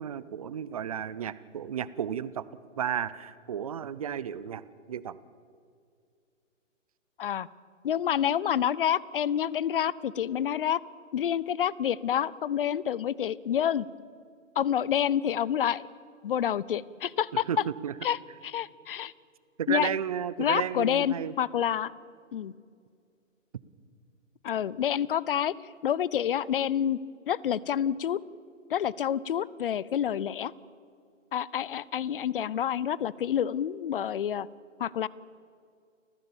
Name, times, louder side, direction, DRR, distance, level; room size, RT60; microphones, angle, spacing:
voice 1, 0.0-2.5 2.8-5.2 17.3-17.9 19.6-21.3, right 8 dB, 30° right, 17 dB, 0.5 m, -33 dB
voice 2, 7.8-10.8 11.1-13.9 14.6-15.9 16.2-17.4 18.0-18.2 18.4-19.1 19.7-19.9 20.4-21.9 22.3-22.5 24.4-25.5 25.8-27.0 27.3-28.2 28.7-30.5 31.3-34.5 34.8-35.1, left 9 dB, 45° left, 22 dB, 0.6 m, -28 dB
29.0 x 15.0 x 7.1 m, 2.3 s
hypercardioid pair, 155°, 39 cm